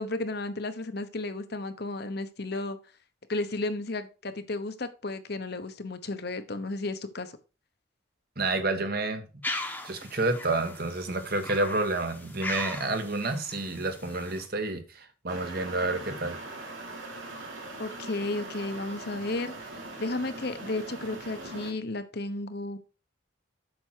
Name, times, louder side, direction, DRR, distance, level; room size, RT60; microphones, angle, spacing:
voice 1, 0.0-2.8 3.3-7.3 17.8-19.7 20.0-22.8, left 2 dB, 55° left, 1.0 m, -33 dB
voice 2, 8.4-9.2 9.8-16.4, right 2 dB, 50° right, 1.4 m, -29 dB
sound 1, 9.4-14.5, left 2 dB, 10° left, 1.1 m, -39 dB
sound 2, 15.3-21.7, right 2 dB, 80° right, 3.0 m, -41 dB
8.1 x 6.1 x 4.6 m
head